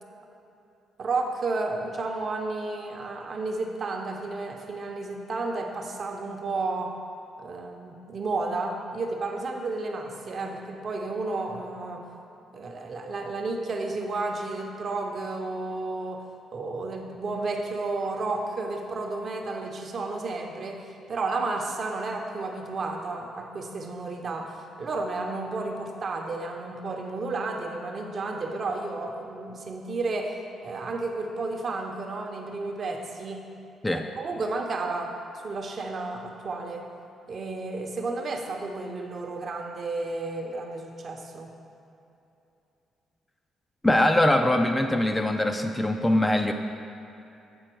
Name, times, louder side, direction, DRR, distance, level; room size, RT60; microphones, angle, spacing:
voice 1, 1.0-7.0 7.4-12.1 12.5-16.3 16.5-33.4 33.9-35.2 35.4-36.9 37.3-41.5, right 3 dB, 50° right, 2 dB, 0.8 m, -32 dB
voice 2, 43.8-46.5, left 1 dB, 10° left, 5 dB, 0.4 m, -22 dB
7.9 x 4.2 x 4.5 m, 2.8 s
cardioid pair, 90°, 0 cm